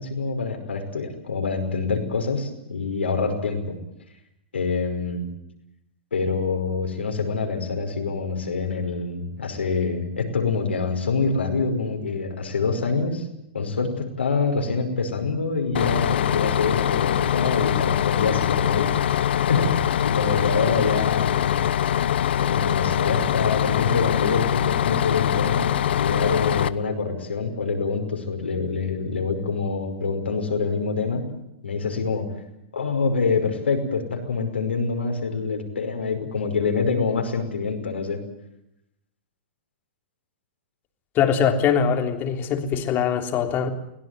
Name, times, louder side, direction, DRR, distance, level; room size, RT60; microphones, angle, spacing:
voice 1, 0.0-3.7 4.5-5.3 6.1-13.3 13.5-18.9 19.3-21.6 22.3-31.2 31.6-32.3 32.7-38.2, left 4 dB, 90° left, 4 dB, 5.4 m, -26 dB
Bus, 15.7-26.7, left 10 dB, 70° left, 1.0 m, -23 dB
voice 2, 41.1-43.7, left 7 dB, 35° left, 5 dB, 3.4 m, -22 dB
22.5 x 17.5 x 9.3 m, 0.83 s
hypercardioid pair, 115°, 6 cm